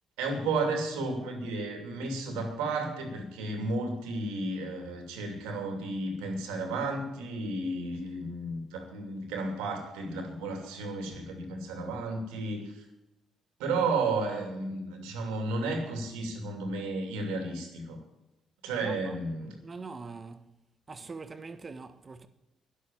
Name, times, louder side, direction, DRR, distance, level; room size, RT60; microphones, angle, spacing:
voice 1, 0.2-12.8 13.6-18.0 18.6-19.6, right 3 dB, 90° right, 2.7 m, -33 dB
voice 2, 18.8-19.2 19.6-20.5 20.9-22.3, right 4 dB, 40° right, 1.2 m, -43 dB
10.5 x 8.3 x 9.0 m
supercardioid pair, 55°, 0 cm